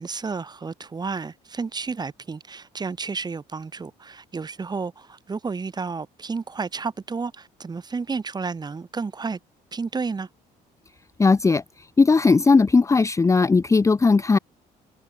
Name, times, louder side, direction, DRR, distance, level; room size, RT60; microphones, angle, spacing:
voice 1, 0.0-9.4 9.7-10.3, right 4 dB, 25° right, 2.0 m, -31 dB
voice 2, 11.2-14.4, left 4 dB, 20° left, 0.8 m, -18 dB
cardioid pair, 110°, 17 cm